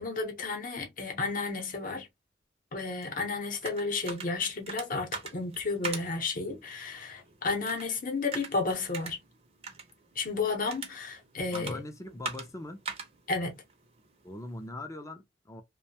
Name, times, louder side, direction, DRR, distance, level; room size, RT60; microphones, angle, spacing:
voice 1, 0.0-2.1 2.7-9.2 10.2-11.8 13.3-13.6, left 3 dB, 50° left, 0.8 m, -32 dB
sound 1, 3.0-14.7, right 4 dB, 35° right, 0.6 m, -44 dB
voice 2, 11.5-12.8 14.2-15.6, left 1 dB, 15° left, 0.5 m, -41 dB
2.5 x 2.2 x 2.7 m
head